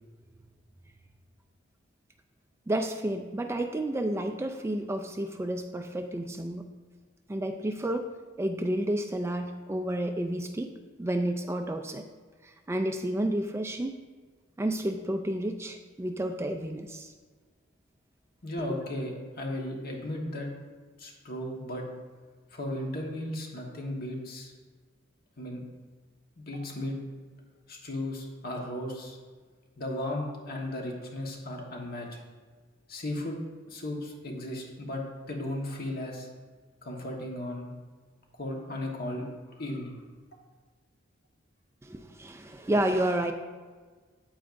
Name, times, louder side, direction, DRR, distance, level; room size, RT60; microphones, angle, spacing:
voice 1, 2.7-6.7 7.3-8.1 8.4-10.7 11.0-12.0 12.4-13.9 14.6-17.1 41.8-43.3, right 1 dB, 15° right, 6 dB, 0.3 m, -30 dB
voice 2, 18.4-20.5 21.0-21.8 22.5-24.5 25.4-25.6 26.4-26.9 27.7-29.2 29.8-32.1 32.9-33.4 33.7-35.0 35.3-36.3 36.8-37.7 38.4-39.2 39.6-40.0, left 1 dB, 50° left, 0 dB, 1.4 m, -35 dB
8.8 x 8.8 x 2.6 m, 1.4 s
head